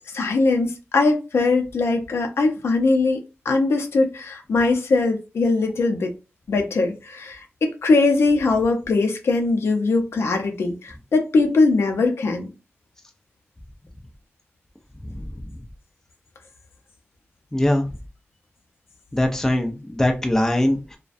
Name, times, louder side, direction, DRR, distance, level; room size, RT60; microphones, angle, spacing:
voice 1, 0.1-3.2 3.5-6.1 6.5-12.5, left 3 dB, 70° left, 0.5 m, -21 dB
voice 2, 15.0-15.3 17.5-17.9 19.1-21.0, left 1 dB, 10° left, 0.5 m, -22 dB
2.4 x 2.1 x 2.4 m
wide cardioid pair, 125°, 5 cm